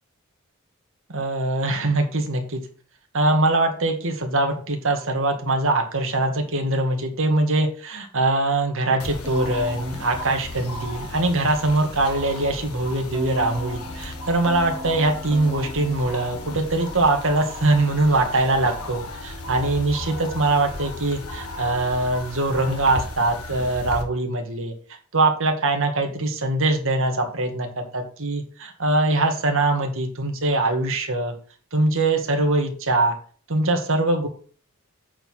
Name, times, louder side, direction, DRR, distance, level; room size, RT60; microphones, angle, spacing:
voice 1, 1.1-2.6 3.1-24.7 25.1-31.3 31.7-33.1 33.5-34.3, right 2 dB, 65° right, 3 dB, 2.1 m, -22 dB
sound 1, 9.0-24.0, left 2 dB, 90° left, 1.6 m, -35 dB
Keyboard (musical), 9.2-11.6 13.1-17.4, equal, 10° right, 2.6 m, -40 dB
8.6 x 4.9 x 5.7 m, 0.41 s
head